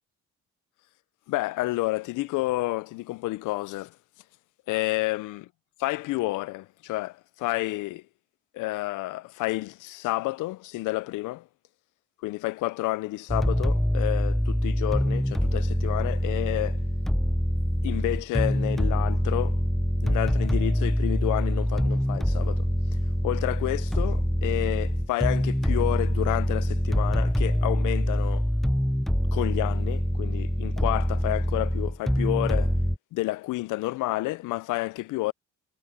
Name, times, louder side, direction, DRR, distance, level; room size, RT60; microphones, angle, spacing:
voice 1, 1.3-3.9 4.7-5.4 5.8-8.0 8.5-11.5 12.2-16.8 17.8-19.6 20.0-22.7 23.2-28.5 29.3-32.7 33.1-35.3, left 19 dB, 85° left, 0.5 m, -30 dB
sound 1, 13.3-33.0, equal, ahead, 0.4 m, -25 dB
cardioid pair, 90°, 30 cm